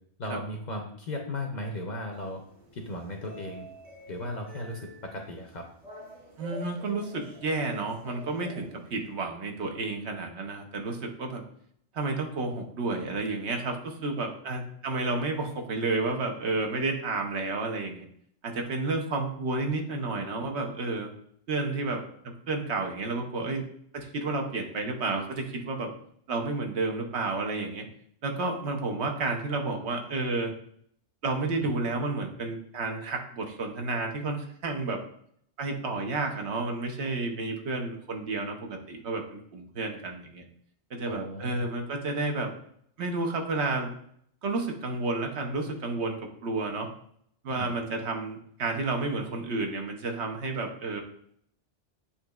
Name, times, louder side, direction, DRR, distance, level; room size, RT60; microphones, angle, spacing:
voice 1, 0.2-2.4 2.7-3.7 4.1-5.7 31.6-31.8 41.1-41.7 47.5-47.8, left 1 dB, 50° left, 2 dB, 0.6 m, -36 dB
sound 1, 2.1-9.1, equal, 45° right, 1.0 m, -47 dB
voice 2, 6.4-11.4 11.9-18.1 18.4-21.1 21.5-23.6 23.9-25.9 26.3-27.9 28.2-30.5 31.2-35.0 35.6-40.4 40.9-42.5 43.0-44.0 44.4-46.9 47.4-51.0, right 3 dB, 70° right, 3 dB, 1.0 m, -31 dB
8.3 x 2.8 x 2.3 m, 0.66 s
omnidirectional pair, 1.2 m